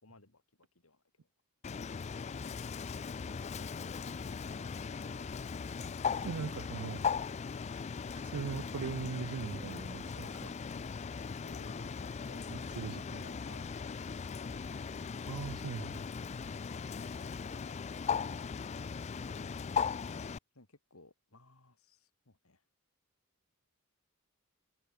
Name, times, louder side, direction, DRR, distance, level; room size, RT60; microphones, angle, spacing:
voice 1, 0.0-1.3 1.7-1.9 6.2-6.6 11.4-14.1 20.5-22.6, left 2 dB, 75° left, 3.5 m, -59 dB
Bird, 1.6-20.4, left 6 dB, 30° left, 0.3 m, -38 dB
sound 1, 3.4-18.8, left 1 dB, 50° left, 3.2 m, -60 dB
voice 2, 6.3-7.0 8.1-10.5 12.5-13.2 15.3-16.1, right 6 dB, 80° right, 0.4 m, -40 dB
head